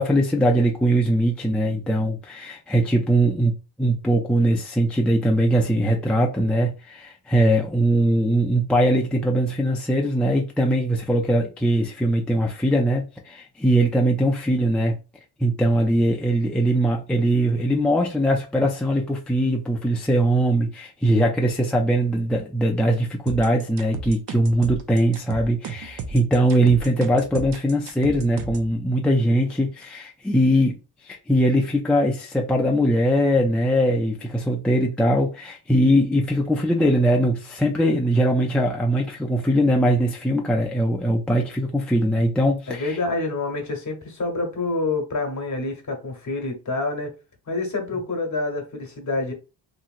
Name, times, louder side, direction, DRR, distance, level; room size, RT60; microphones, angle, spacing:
voice 1, 0.0-15.0 15.4-30.8 31.0-43.0, right 1 dB, 5° left, 0.3 m, -21 dB
sound 1, 23.3-28.7, right 5 dB, 55° right, 0.6 m, -34 dB
voice 2, 42.7-47.1 47.5-49.3, left 3 dB, 35° left, 1.0 m, -27 dB
2.8 x 2.7 x 2.4 m
cardioid pair, 110°, 48 cm